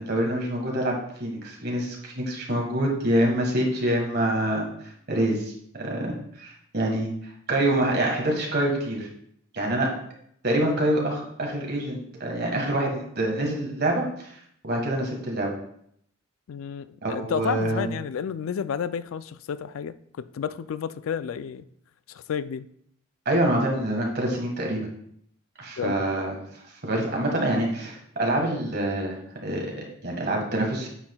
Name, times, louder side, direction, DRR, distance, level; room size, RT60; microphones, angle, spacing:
voice 1, 0.0-4.7 5.1-7.1 7.5-9.1 9.5-9.9 10.4-14.3 14.6-15.5 17.0-17.8 23.2-24.9 25.6-26.3 26.8-30.9, right 1 dB, 50° right, 1.5 m, -26 dB
voice 2, 16.5-21.6 22.1-22.7 25.8-26.0, left 7 dB, 80° left, 0.3 m, -31 dB
8.7 x 5.7 x 2.3 m
head